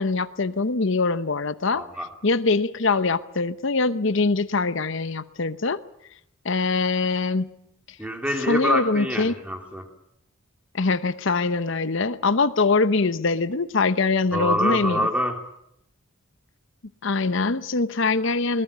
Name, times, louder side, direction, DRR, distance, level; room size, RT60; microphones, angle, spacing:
voice 1, 0.0-1.8 2.2-5.8 6.4-7.5 8.5-9.3 10.7-15.1 17.0-18.6, left 3 dB, 60° left, 13 dB, 0.9 m, -23 dB
voice 2, 1.7-2.1 8.0-9.9 14.3-15.4, equal, 5° right, 4 dB, 3.0 m, -25 dB
21.0 x 19.0 x 8.5 m, 0.76 s
head